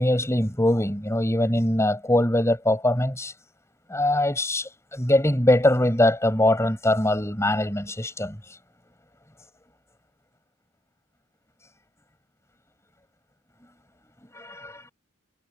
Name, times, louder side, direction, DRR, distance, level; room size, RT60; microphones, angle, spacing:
voice 1, 0.0-3.3 3.9-8.4 14.3-14.9, left 1 dB, 15° left, 5.3 m, -22 dB
head